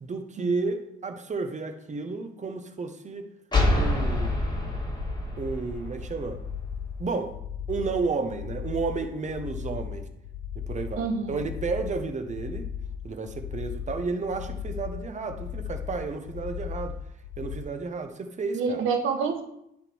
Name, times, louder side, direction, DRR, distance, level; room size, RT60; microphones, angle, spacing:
voice 1, 0.0-3.3 3.7-4.7 5.4-6.4 7.0-7.3 7.7-10.1 10.5-12.7 13.0-17.0 17.4-18.8, right 4 dB, 35° right, 7 dB, 1.1 m, -32 dB
sound 1, 3.5-7.0, left 1 dB, 20° left, 1.9 m, -27 dB
sound 2, 6.0-17.6, left 8 dB, 65° left, 1.1 m, -37 dB
voice 2, 11.0-11.4 18.5-19.4, right 5 dB, 85° right, 5 dB, 1.3 m, -27 dB
10.0 x 3.7 x 4.7 m, 0.78 s
cardioid pair, 90°, 20 cm